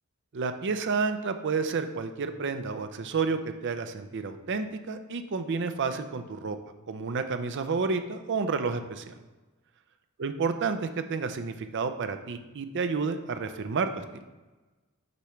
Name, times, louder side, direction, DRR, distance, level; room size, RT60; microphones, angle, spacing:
voice 1, 0.3-6.6 6.9-9.1 10.2-14.0, right 4 dB, 55° right, 8 dB, 0.5 m, -30 dB
6.8 x 3.2 x 5.7 m, 1.2 s
head